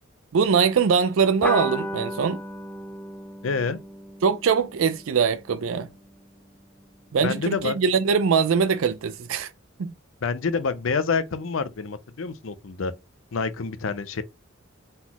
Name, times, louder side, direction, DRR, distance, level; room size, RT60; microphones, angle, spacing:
voice 1, 0.3-2.4 4.2-5.9 7.1-9.5 9.8-9.9, right 6 dB, 75° right, 0.4 m, -22 dB
sound 1, 1.4-6.3, equal, 10° left, 0.5 m, -35 dB
voice 2, 3.4-3.8 7.2-7.8 10.2-12.9 13.3-14.2, left 4 dB, 70° left, 0.6 m, -27 dB
4.1 x 3.8 x 2.9 m
head